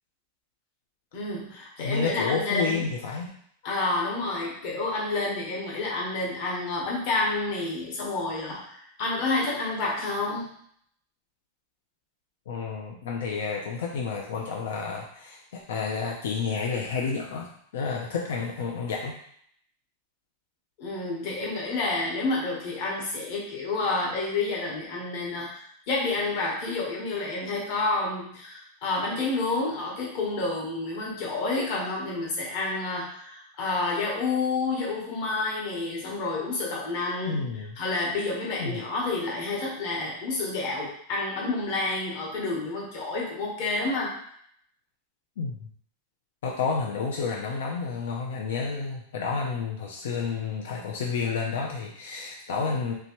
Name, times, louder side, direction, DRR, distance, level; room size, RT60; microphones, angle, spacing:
voice 1, 1.1-2.8 3.6-10.6 20.8-37.4 37.8-44.2, left 3 dB, 45° left, -3 dB, 1.1 m, -29 dB
voice 2, 1.8-3.3 12.5-19.1 37.2-37.7 38.6-38.8 45.4-45.7 46.4-52.9, left 5 dB, 80° left, -1 dB, 0.5 m, -30 dB
3.3 x 2.9 x 3.0 m, 0.65 s
supercardioid pair, 170°, 0 cm